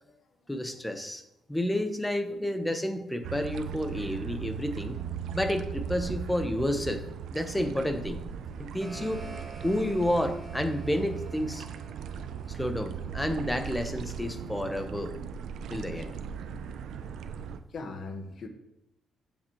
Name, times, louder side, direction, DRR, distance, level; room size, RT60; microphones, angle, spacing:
voice 1, 0.5-1.2 1.5-5.0 5.3-7.0 7.3-8.2 8.6-9.3 9.6-11.7 12.5-15.2 15.7-16.2, left 1 dB, 10° left, 7 dB, 1.2 m, -30 dB
sound 1, 3.2-17.6, right 7 dB, 75° right, 0.7 m, -38 dB
sound 2, 8.4-13.4, right 3 dB, 25° right, 3.4 m, -48 dB
voice 2, 17.7-18.5, left 3 dB, 55° left, 5 dB, 1.7 m, -39 dB
15.0 x 7.3 x 3.3 m, 0.87 s
cardioid pair, 90°, 0 cm